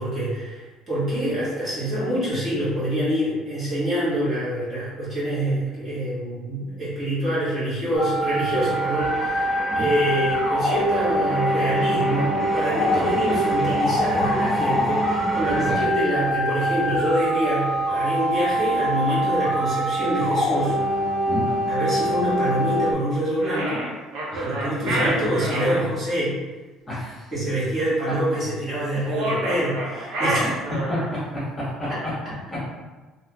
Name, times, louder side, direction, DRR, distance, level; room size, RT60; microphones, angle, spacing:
voice 1, 0.0-9.5 9.7-20.7 21.7-23.8 24.4-26.3 27.3-30.5 31.9-32.3, equal, 30° right, -10 dB, 1.3 m, -26 dB
sound 1, 7.9-22.9, equal, 65° left, 0.6 m, -24 dB
sound 2, 8.6-15.7, right 1 dB, 5° right, 0.5 m, -32 dB
voice 2, 12.9-13.4 15.7-15.9 21.3-21.5 24.3-24.6 26.9-27.3 28.1-28.2 30.4-30.5 30.9-32.0 32.5-32.6, left 1 dB, 10° left, -9 dB, 1.0 m, -30 dB
sound 3, 23.4-25.8 29.0-31.2, right 1 dB, 65° right, 0.7 m, -27 dB
3.4 x 2.9 x 2.3 m, 1.2 s
cardioid pair, 170°, 0 cm